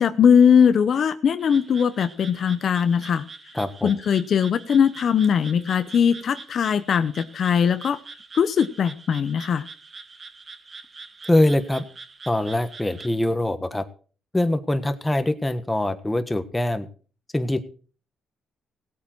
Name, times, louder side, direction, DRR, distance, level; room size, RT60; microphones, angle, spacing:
voice 1, 0.0-3.2 3.8-8.0 8.3-9.6, left 7 dB, 55° left, 11 dB, 0.8 m, -20 dB
Frog, 1.4-13.1, right 4 dB, 35° right, 1.4 m, -44 dB
voice 2, 3.5-3.9 11.3-11.8 12.3-13.8 14.3-16.9 17.3-17.6, left 1 dB, 10° left, 9 dB, 1.4 m, -23 dB
17.0 x 8.5 x 4.6 m, 0.40 s
cardioid pair, 90°, 0 cm